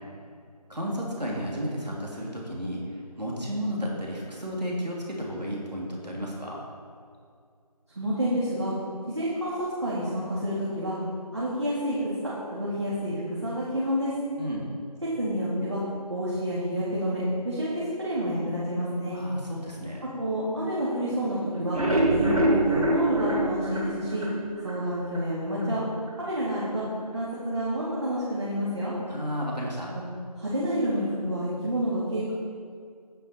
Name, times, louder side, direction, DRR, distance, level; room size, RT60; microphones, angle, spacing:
voice 1, 0.7-6.6 14.4-14.7 19.1-20.0 29.1-29.9, equal, 85° right, -3 dB, 2.5 m, -33 dB
voice 2, 7.9-8.7 9.1-9.5 9.8-10.9 11.3-12.0 12.5-14.1 15.2-15.8 16.1-19.2 20.2-21.8 22.1-24.2 24.6-25.8 26.2-26.8 27.1-28.9 29.9-30.0 30.4-32.3, equal, 45° right, -9 dB, 2.4 m, -29 dB
sound 1, 21.5-24.8 25.1-25.2 25.6-25.7 26.1-26.2, right 1 dB, 60° right, 2.3 m, -25 dB
9.3 x 9.1 x 4.3 m, 2.2 s
figure-of-eight pair, 170°, 21 cm